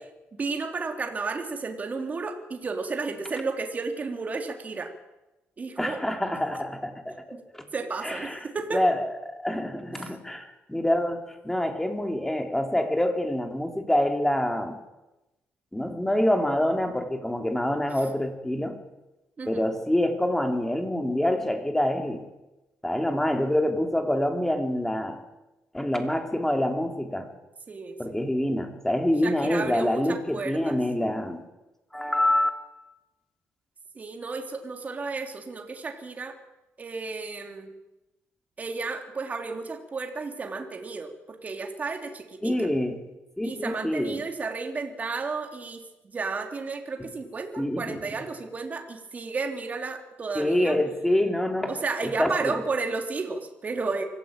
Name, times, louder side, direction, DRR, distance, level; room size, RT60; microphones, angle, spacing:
voice 1, 0.3-4.9 5.6-6.0 7.3-7.4 7.7-8.8 10.0-10.1 19.4-19.6 27.7-28.2 29.2-30.8 33.9-36.4 36.8-37.7 38.6-42.5 43.4-50.8 51.7-54.0, right 4 dB, 35° right, 4 dB, 3.3 m, -33 dB
voice 2, 5.8-7.6 8.0-8.4 8.7-14.8 15.7-18.8 19.5-22.2 22.8-25.2 25.7-27.3 28.0-31.5 31.9-32.6 42.4-43.0 43.4-44.2 47.0-47.1 47.6-48.0 50.4-51.7 52.0-52.6, left 1 dB, 5° left, 5 dB, 3.6 m, -26 dB
24.5 x 15.0 x 9.0 m, 1.0 s
cardioid pair, 105°, 5 cm